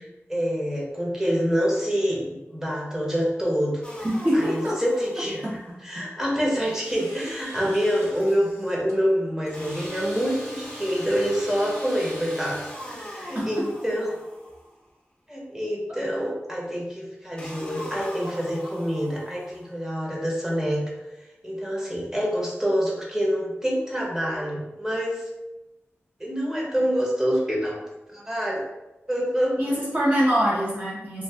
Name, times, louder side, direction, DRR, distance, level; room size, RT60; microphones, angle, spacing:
voice 1, 0.3-3.8 4.3-14.2 15.3-20.8 21.4-25.2 26.2-27.8 28.1-28.6 29.1-29.8, equal, 10° right, -3 dB, 0.9 m, -26 dB
sound 1, 3.8-5.8 9.5-14.8 17.4-19.8, equal, 20° left, 0.7 m, -41 dB
voice 2, 4.0-4.8 5.4-5.5 6.0-6.1 13.3-13.7 29.6-31.2, equal, 35° right, -7 dB, 0.9 m, -24 dB
Domestic sounds home sounds, 6.5-12.8, right 1 dB, 80° right, 1.2 m, -44 dB
2.5 x 2.4 x 3.3 m, 1.0 s
wide cardioid pair, 50°, 5 cm